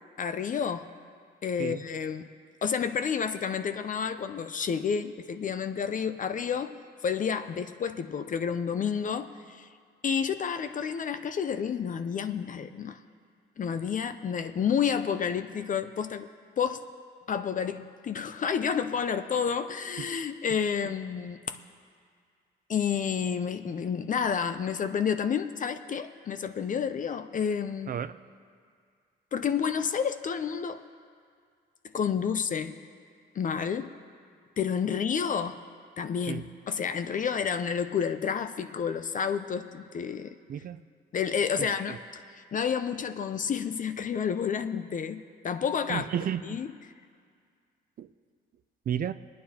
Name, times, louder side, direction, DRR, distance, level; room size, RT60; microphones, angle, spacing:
voice 1, 0.2-0.9 1.4-2.3 2.6-6.8 7.0-9.7 10.0-13.0 13.6-16.3 16.6-16.8 17.3-21.6 22.7-28.0 29.3-30.8 31.9-32.8 33.4-33.9 34.6-35.6 36.0-40.3 41.1-42.2 42.5-46.0 46.4-46.7, left 7 dB, 40° left, 9 dB, 0.5 m, -30 dB
voice 2, 40.5-40.8 41.6-42.0 45.9-46.6 48.0-48.1 48.9-49.1, right 9 dB, 45° right, 13 dB, 0.4 m, -32 dB
25.0 x 9.4 x 2.9 m, 2.1 s
cardioid pair, 90°, 20 cm